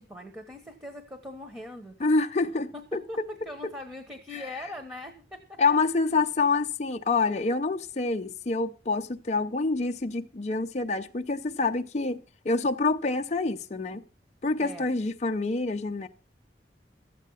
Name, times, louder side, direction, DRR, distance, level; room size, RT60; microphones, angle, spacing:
voice 1, 0.0-2.1 2.7-5.6 14.6-14.9, left 1 dB, 10° right, 1.3 m, -41 dB
voice 2, 2.0-3.2 4.3-4.5 5.6-14.0 14.4-16.1, left 3 dB, 40° left, 0.6 m, -27 dB
12.5 x 8.3 x 5.6 m
head